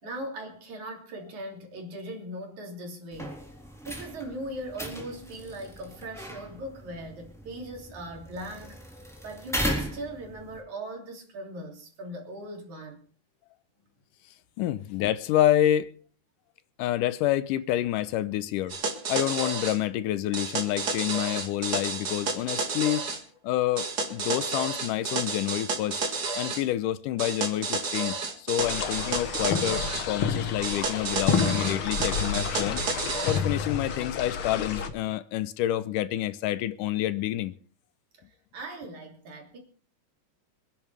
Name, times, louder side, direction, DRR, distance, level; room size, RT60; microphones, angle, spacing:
voice 1, 0.0-3.3 3.8-8.8 9.2-13.0 38.5-39.6, right 1 dB, 65° right, 4.4 m, -39 dB
sound 1, 3.1-10.6, equal, ahead, 3.2 m, -37 dB
voice 2, 14.6-15.9 16.8-18.7 19.1-23.1 23.4-26.0 26.4-32.8 33.2-37.5, left 13 dB, 80° left, 2.3 m, -28 dB
sound 2, 18.7-19.8 20.3-23.2 23.8-26.6 27.2-30.1 30.6-33.4, right 4 dB, 35° right, 2.2 m, -31 dB
sound 3, 28.6-34.9, left 6 dB, 55° left, 1.7 m, -30 dB
26.0 x 10.5 x 3.4 m
omnidirectional pair, 3.7 m